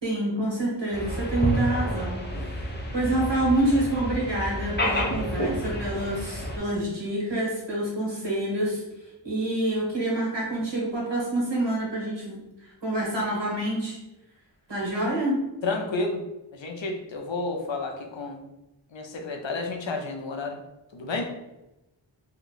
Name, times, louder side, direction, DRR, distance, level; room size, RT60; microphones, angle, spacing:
voice 1, 0.0-2.6 2.9-8.8 9.2-12.4 12.8-14.0 14.7-15.4, right 1 dB, 65° right, -4 dB, 1.4 m, -27 dB
sound 1, 0.9-6.6, equal, 25° left, 0.7 m, -29 dB
voice 2, 15.6-16.2 16.5-18.4 18.9-20.6 20.9-21.3, left 3 dB, 75° left, 3 dB, 0.7 m, -31 dB
2.8 x 2.3 x 3.9 m, 0.96 s
wide cardioid pair, 45°, 46 cm